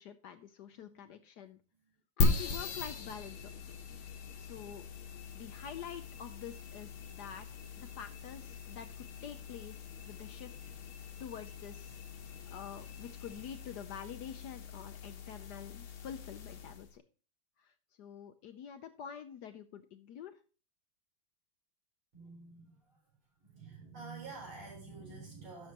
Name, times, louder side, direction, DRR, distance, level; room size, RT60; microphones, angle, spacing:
voice 1, 0.0-1.6 2.2-3.7 4.4-4.8 5.3-7.5 7.7-10.6 11.2-12.0 12.5-17.0 17.6-20.4, left 8 dB, 70° left, 9 dB, 1.0 m, -47 dB
voice 2, 0.7-1.0 1.7-1.9 22.1-23.0 23.4-25.7, right 4 dB, 85° right, -1 dB, 5.1 m, -49 dB
sound 1, 2.2-16.9, left 3 dB, 85° left, 2.0 m, -39 dB
11.0 x 6.9 x 2.9 m, 0.35 s
omnidirectional pair, 2.2 m